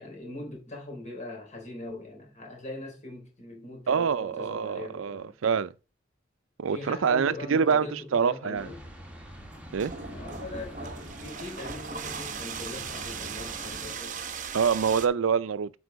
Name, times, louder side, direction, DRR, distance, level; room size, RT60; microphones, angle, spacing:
voice 1, 0.0-5.3 6.7-8.8 10.0-14.2, left 2 dB, 35° left, 3.7 m, -41 dB
voice 2, 3.9-5.7 6.6-8.7 9.7-9.9 14.5-15.7, right 6 dB, 85° right, 0.5 m, -26 dB
sound 1, 8.5-13.9, equal, 5° right, 1.7 m, -45 dB
sound 2, 9.3-15.1, right 6 dB, 40° right, 0.9 m, -38 dB
8.1 x 4.8 x 5.1 m
head